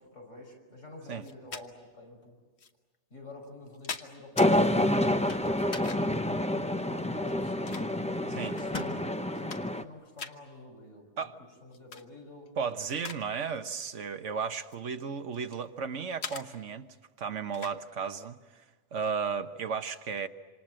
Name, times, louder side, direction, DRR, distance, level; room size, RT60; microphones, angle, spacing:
voice 1, 0.0-2.4 3.1-6.5 6.9-7.8 8.2-11.3 11.6-12.5, left 2 dB, 80° left, 6.0 m, -49 dB
sound 1, 1.2-1.7 2.6-2.7 3.4-4.5 5.6-6.2 7.2-8.3 8.8-8.9 9.2-9.9 10.2-10.4 11.7-12.0 12.5-13.3 13.5-13.8 14.6-15.7 16.2-16.5 17.5-17.8, left 5 dB, 60° left, 1.4 m, -42 dB
sound 2, 4.4-9.8, left 1 dB, 5° left, 0.6 m, -28 dB
Microwave oven, 5.0-6.0 8.6-9.2, left 2 dB, 35° left, 1.8 m, -42 dB
voice 2, 12.6-16.9 17.2-18.4 18.9-20.3, right 6 dB, 75° right, 1.4 m, -34 dB
27.5 x 26.5 x 7.6 m
omnidirectional pair, 1.3 m